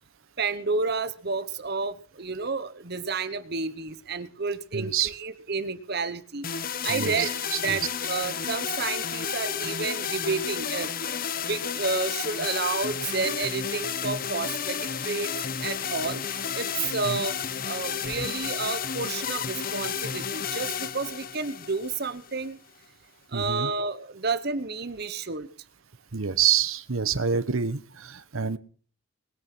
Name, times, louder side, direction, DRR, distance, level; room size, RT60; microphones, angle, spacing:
voice 1, 0.4-6.5 6.8-7.3 7.6-10.9 11.5-14.8 15.0-15.3 15.6-16.2 16.5-17.4 17.6-22.6 23.3-25.5, right 4 dB, 50° right, 12 dB, 1.1 m, -30 dB
voice 2, 4.7-5.1 6.9-7.8 17.0-17.2 23.3-23.7 26.1-28.6, right 7 dB, 80° right, 15 dB, 1.1 m, -27 dB
sound 1, 6.4-22.5, left 7 dB, 45° left, 0.9 m, -32 dB
21.0 x 9.8 x 6.1 m, 0.43 s
head